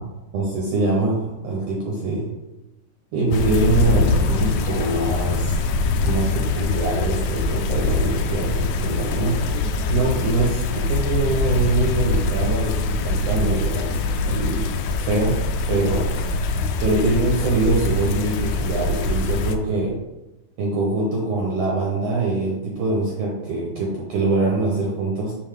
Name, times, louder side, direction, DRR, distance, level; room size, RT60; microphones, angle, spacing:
voice 1, 0.3-2.3 3.1-5.7 6.0-9.3 9.9-13.9 14.2-14.7 15.0-15.3 15.7-16.2 16.8-19.9 20.6-25.3, right 2 dB, 65° right, -4 dB, 1.8 m, -23 dB
sound 1, 3.3-19.5, left 3 dB, 80° left, 2.0 m, -23 dB
5.5 x 5.1 x 3.6 m, 0.99 s
omnidirectional pair, 3.7 m